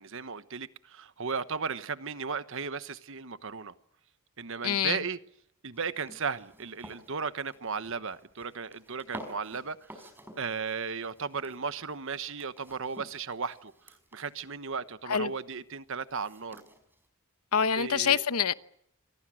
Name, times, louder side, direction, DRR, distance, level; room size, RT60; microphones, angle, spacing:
voice 1, 0.0-3.7 4.4-5.2 5.6-10.1 10.4-13.7 14.1-16.6 17.7-18.2, right 5 dB, 60° right, 1.2 m, -35 dB
voice 2, 4.6-5.0 15.1-15.3 17.5-18.5, left 7 dB, 85° left, 1.0 m, -26 dB
sound 1, 5.7-17.1, right 1 dB, 10° right, 4.9 m, -52 dB
28.5 x 24.5 x 6.4 m
head